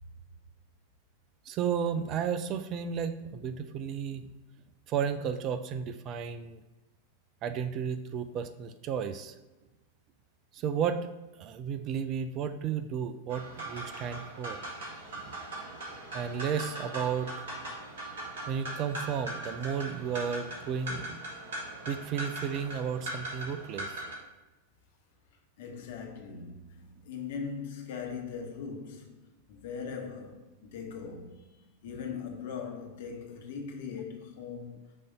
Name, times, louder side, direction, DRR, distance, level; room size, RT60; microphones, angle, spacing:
voice 1, 1.5-4.3 4.9-6.6 7.4-9.3 10.5-11.1 11.4-14.6 15.1-15.3 16.1-17.3 18.5-21.2 21.9-24.0, right 7 dB, 35° right, 0.4 m, -33 dB
sound 1, 13.3-24.1, right 1 dB, 60° right, 1.9 m, -40 dB
voice 2, 25.6-34.8, left 6 dB, 55° left, 1.2 m, -40 dB
6.4 x 2.7 x 5.3 m
figure-of-eight pair, 90°, 0 cm